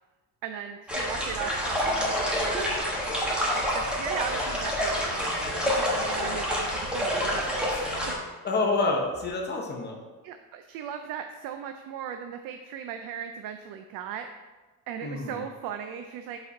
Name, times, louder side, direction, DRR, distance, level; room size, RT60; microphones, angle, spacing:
voice 1, 0.4-2.8 3.7-5.3 5.6-8.2 10.2-14.3 14.9-16.4, right 8 dB, 65° right, 7 dB, 0.5 m, -37 dB
sound 1, 0.9-8.1, equal, 5° right, 0.9 m, -28 dB
voice 2, 8.4-10.0 15.0-15.4, left 3 dB, 30° left, 1 dB, 0.7 m, -28 dB
5.1 x 4.2 x 5.2 m, 1.2 s
cardioid pair, 170°, 37 cm